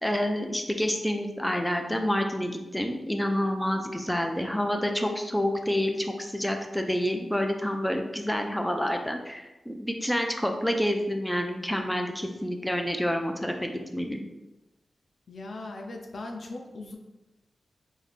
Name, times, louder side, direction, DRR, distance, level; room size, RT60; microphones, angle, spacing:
voice 1, 0.0-14.2, equal, 5° left, 3 dB, 0.3 m, -28 dB
voice 2, 15.3-17.0, left 2 dB, 70° left, 2 dB, 0.4 m, -39 dB
3.3 x 2.6 x 2.4 m, 1.0 s
cardioid pair, 60°, 0 cm